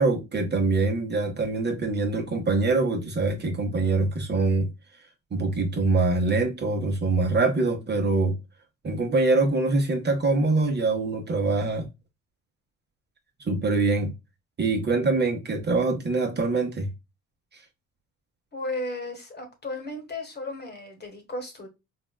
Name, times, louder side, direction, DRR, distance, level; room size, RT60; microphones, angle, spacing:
voice 1, 0.0-4.7 5.3-8.4 8.8-11.9 13.5-14.1 14.6-16.9, right 3 dB, 35° right, 0.9 m, -24 dB
voice 2, 18.5-21.7, left 2 dB, 35° left, 1.2 m, -34 dB
3.5 x 2.3 x 2.2 m
cardioid pair, 90°, 30 cm